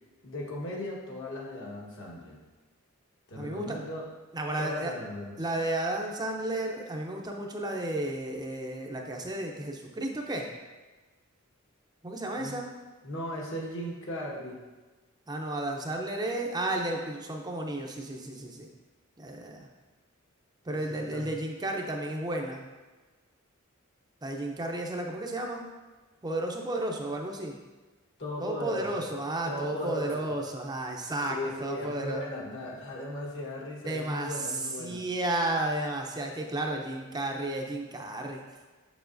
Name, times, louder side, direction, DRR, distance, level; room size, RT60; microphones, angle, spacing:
voice 1, 0.2-2.4 3.3-4.1 4.6-5.4 12.4-12.6 13.0-14.6 20.7-21.3 28.2-29.0 29.5-30.3 31.3-35.0, left 1 dB, 60° left, -3 dB, 1.4 m, -37 dB
voice 2, 3.4-3.8 4.3-4.9 5.4-10.5 12.0-12.7 15.3-18.7 19.2-19.7 20.6-22.7 24.2-25.6 26.2-27.6 28.4-32.2 33.8-38.4, right 1 dB, 20° right, 1 dB, 0.6 m, -33 dB
6.9 x 6.5 x 2.6 m, 1.2 s
head